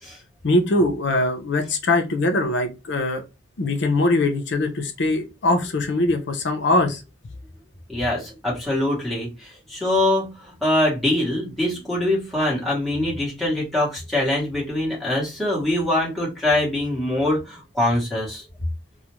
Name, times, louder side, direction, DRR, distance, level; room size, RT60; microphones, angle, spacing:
voice 1, 0.4-3.2 3.6-7.0, left 2 dB, 60° left, 5 dB, 0.5 m, -22 dB
voice 2, 7.9-18.5, left 1 dB, ahead, -7 dB, 1.0 m, -23 dB
2.4 x 2.1 x 2.9 m, 0.26 s
head